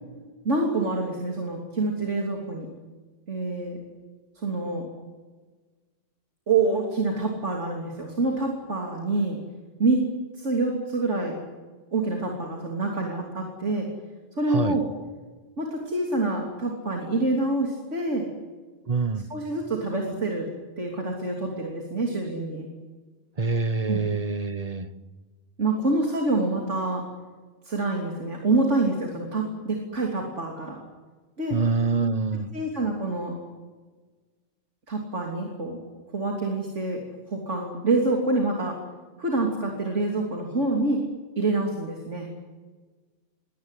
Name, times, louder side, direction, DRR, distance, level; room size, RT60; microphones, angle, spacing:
voice 1, 0.5-2.7 3.3-3.8 4.4-4.9 6.5-9.4 9.8-10.0 10.4-11.3 11.9-13.9 14.4-14.8 15.6-18.3 19.3-20.5 20.8-22.7 23.9-24.0 25.6-27.1 27.6-30.8 31.4-31.6 32.5-33.4 34.9-35.8 36.1-37.0 37.3-38.8 39.2-41.0 41.4-42.3, right 2 dB, 80° right, 1 dB, 3.4 m, -26 dB
voice 2, 18.9-19.2 23.4-24.9 31.5-32.5, right 4 dB, 35° right, 11 dB, 1.2 m, -25 dB
23.0 x 18.5 x 10.0 m, 1.4 s
omnidirectional pair, 1.2 m